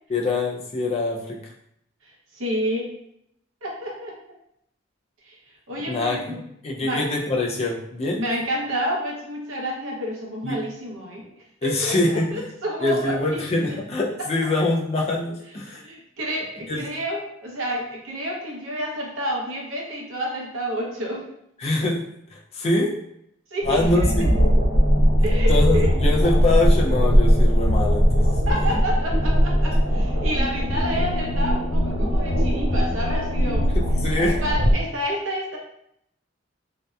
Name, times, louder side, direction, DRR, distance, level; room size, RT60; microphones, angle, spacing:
voice 1, 0.1-1.5 5.9-6.4 6.6-8.2 10.4-10.6 11.6-12.5 12.8-15.8 16.7-16.8 21.6-23.0 23.7-24.3 25.5-28.7 33.7-34.4, left 2 dB, 30° left, -1 dB, 0.3 m, -24 dB
voice 2, 2.3-2.9 3.6-4.2 5.2-5.4 5.7-6.4 6.8-7.0 8.2-11.3 11.6-13.8 14.2-14.3 15.7-21.3 23.5-24.1 25.2-25.9 28.5-33.7 34.4-35.6, equal, 85° right, -2 dB, 0.7 m, -29 dB
sound 1, 23.6-34.7, equal, 80° left, 1.0 m, -20 dB
2.7 x 2.1 x 2.3 m, 0.75 s
head